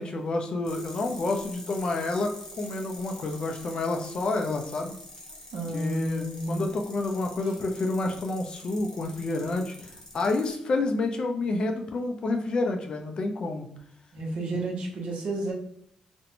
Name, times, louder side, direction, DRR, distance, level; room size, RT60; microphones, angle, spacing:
voice 1, 0.0-4.9 5.7-13.7, left 2 dB, 45° left, 4 dB, 0.4 m, -29 dB
sound 1, 0.6-10.5, left 1 dB, 25° left, 0.8 m, -46 dB
voice 2, 5.5-6.6 14.1-15.5, right 1 dB, 65° right, -1 dB, 0.8 m, -30 dB
2.5 x 2.1 x 2.9 m, 0.67 s
cardioid pair, 130°, 2 cm